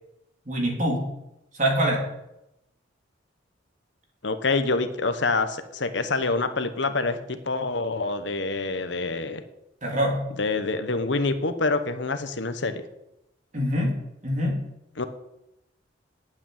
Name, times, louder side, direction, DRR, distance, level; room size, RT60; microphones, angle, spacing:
voice 1, 0.4-1.1 1.5-2.0 9.8-10.2 13.5-13.9 14.2-14.6, equal, 40° right, 0 dB, 3.3 m, -24 dB
voice 2, 4.2-9.4 10.4-12.8 15.0-15.1, left 3 dB, 70° left, 9 dB, 1.1 m, -26 dB
8.8 x 8.1 x 9.2 m, 0.87 s
head